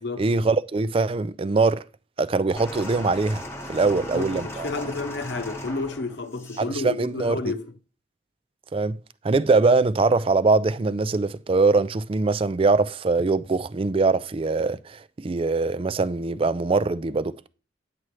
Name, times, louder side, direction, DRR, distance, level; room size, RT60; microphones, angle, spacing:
voice 1, 0.2-1.8 2.2-3.4 3.7-4.7 6.6-7.4 8.7-9.0 9.2-17.5, right 3 dB, 30° right, 0.3 m, -22 dB
sound 1, 2.6-6.7 7.6-7.7, left 1 dB, 15° left, 1.1 m, -37 dB
voice 2, 3.9-7.7, left 3 dB, 70° left, 0.9 m, -31 dB
9.7 x 7.5 x 3.2 m
head